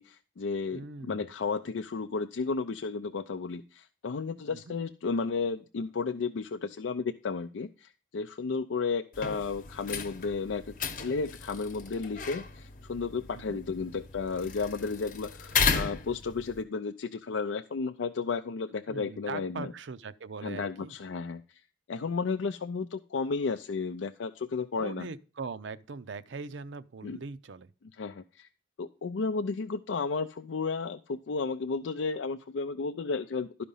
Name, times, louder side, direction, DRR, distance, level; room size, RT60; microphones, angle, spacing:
voice 1, 0.0-19.7 20.4-21.6 21.9-25.1 27.0-27.2 28.0-28.5 28.8-33.6, left 4 dB, 85° left, 0.5 m, -33 dB
voice 2, 0.7-1.3 4.4-4.7 13.3-13.6 18.9-20.9 24.8-27.7, right 4 dB, 75° right, 0.5 m, -41 dB
sound 1, 9.1-16.6, left 5 dB, 45° left, 0.9 m, -34 dB
12.0 x 5.1 x 5.5 m
head